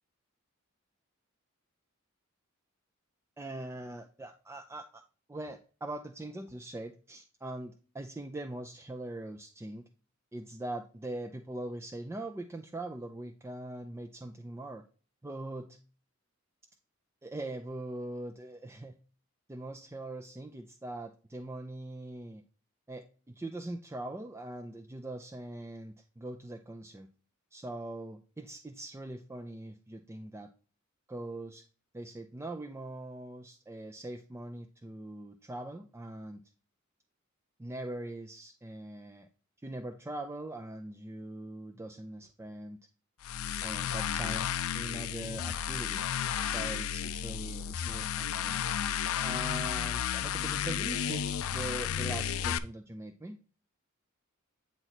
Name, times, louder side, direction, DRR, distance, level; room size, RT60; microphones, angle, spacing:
voice 1, 3.4-5.0 5.3-9.9 10.3-14.8 15.2-15.8 17.2-19.0 19.5-22.4 22.9-27.1 27.5-30.5 31.1-31.6 31.9-36.4 37.6-39.3 39.6-42.8 43.6-46.0 46.4-53.4, right 1 dB, 15° right, 3 dB, 0.4 m, -42 dB
sound 1, 43.2-52.6, left 9 dB, 80° left, 0.4 m, -33 dB
8.9 x 3.0 x 4.0 m, 0.37 s
head